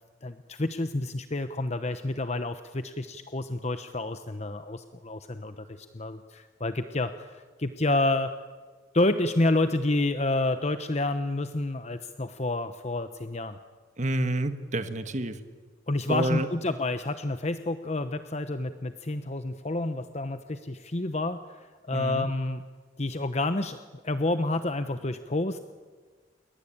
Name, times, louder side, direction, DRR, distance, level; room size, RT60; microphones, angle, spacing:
voice 1, 0.2-8.3 8.9-13.6 15.9-22.6 23.0-25.6, left 2 dB, 35° left, 9 dB, 1.0 m, -29 dB
voice 2, 14.0-15.4 16.1-16.5 21.9-22.3, right 1 dB, 40° right, 9 dB, 1.7 m, -28 dB
28.5 x 23.0 x 8.8 m, 1.4 s
head